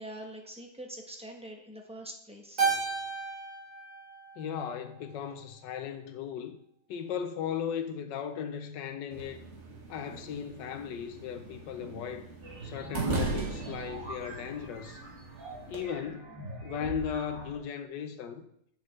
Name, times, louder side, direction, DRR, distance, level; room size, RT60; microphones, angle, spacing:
voice 1, 0.0-2.6, right 1 dB, 5° right, 0.5 m, -44 dB
Keyboard (musical), 2.6-5.1, right 5 dB, 65° right, 2.3 m, -33 dB
voice 2, 4.4-6.6 6.9-9.4 9.9-12.3 12.6-15.0 15.7-16.3 16.6-18.4, left 8 dB, 85° left, 1.4 m, -37 dB
sound 1, 9.1-15.8, right 3 dB, 45° right, 1.6 m, -39 dB
sound 2, 12.4-17.6, right 1 dB, 85° right, 2.6 m, -42 dB
8.3 x 6.5 x 3.3 m
omnidirectional pair, 1.9 m